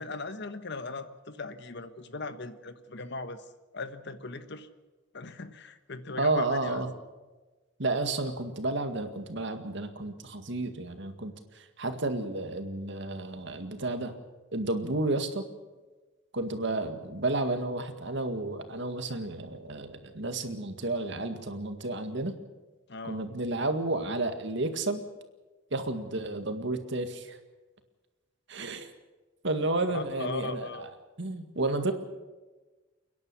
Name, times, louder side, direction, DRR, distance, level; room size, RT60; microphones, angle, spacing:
voice 1, 0.0-3.4 3.7-4.7 5.1-6.8 22.9-23.2 29.9-30.8, left 3 dB, 60° left, 11 dB, 1.3 m, -38 dB
voice 2, 6.2-6.9 7.8-14.1 14.5-15.5 16.3-22.4 23.0-25.0 25.7-27.4 28.5-28.9 29.4-30.9 31.2-31.9, right 2 dB, 65° right, 7 dB, 2.0 m, -31 dB
30.0 x 10.5 x 8.5 m, 1.2 s
head